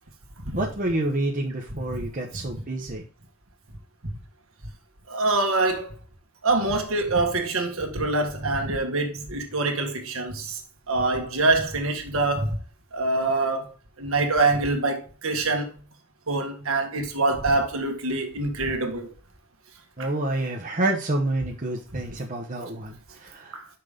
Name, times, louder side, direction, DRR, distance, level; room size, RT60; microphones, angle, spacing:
voice 1, 0.6-3.0 20.0-23.6, right 2 dB, 40° right, 0.9 m, -28 dB
voice 2, 5.1-5.9 6.4-10.6 10.9-12.6 12.9-15.7 16.3-19.1 20.0-20.1 23.5-23.7, right 2 dB, 70° right, 1.6 m, -25 dB
5.9 x 5.3 x 5.0 m
head